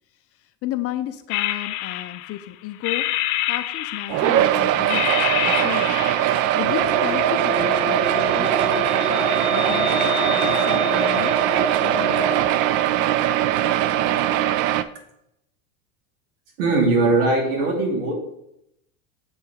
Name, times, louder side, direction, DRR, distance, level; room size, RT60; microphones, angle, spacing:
voice 1, 0.1-3.1 3.5-6.0 6.5-9.1 9.5-11.5 11.8-12.7, left 13 dB, 35° left, 9 dB, 0.5 m, -33 dB
sound 1, 1.3-2.4 2.8-4.5 4.9-6.5, left 15 dB, 70° left, 0.7 m, -27 dB
sound 2, 4.1-14.8, right 12 dB, 45° right, 0.5 m, -21 dB
sound 3, 6.7-12.4, left 1 dB, ahead, 1.0 m, -27 dB
voice 2, 16.6-18.1, right 2 dB, 75° right, 0 dB, 2.6 m, -20 dB
7.2 x 4.4 x 4.9 m, 0.79 s
hypercardioid pair, 105°, 45 cm